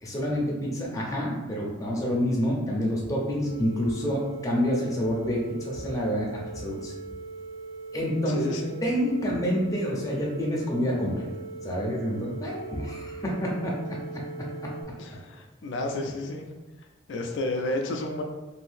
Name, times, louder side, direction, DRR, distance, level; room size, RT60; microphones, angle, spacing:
voice 1, 0.0-6.3 6.5-6.9 7.9-8.6 8.8-11.3 11.6-14.7, equal, 15° left, -3 dB, 0.6 m, -28 dB
sound 1, 3.4-14.8, right 4 dB, 60° right, 1.2 m, -40 dB
voice 2, 8.3-8.7 15.0-16.4 17.1-18.2, left 1 dB, 75° left, 2 dB, 0.4 m, -31 dB
2.6 x 2.6 x 3.4 m, 1.2 s
head